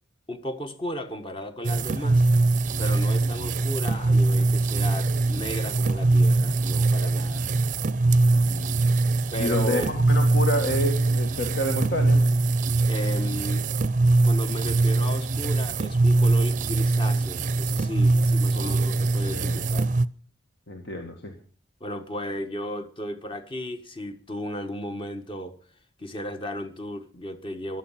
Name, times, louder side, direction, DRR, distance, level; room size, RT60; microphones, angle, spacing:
voice 1, 0.3-2.2 2.8-7.5 9.3-9.9 12.9-13.7 14.2-19.9 21.8-25.5 26.0-27.8, equal, 25° left, 1.4 m, -35 dB
sound 1, 1.6-20.1, right 3 dB, 40° right, 0.6 m, -22 dB
voice 2, 8.3-8.8 9.4-12.2 18.5-18.9 19.2-19.6 20.7-21.3, left 1 dB, 60° left, 1.9 m, -29 dB
16.0 x 11.5 x 5.7 m
head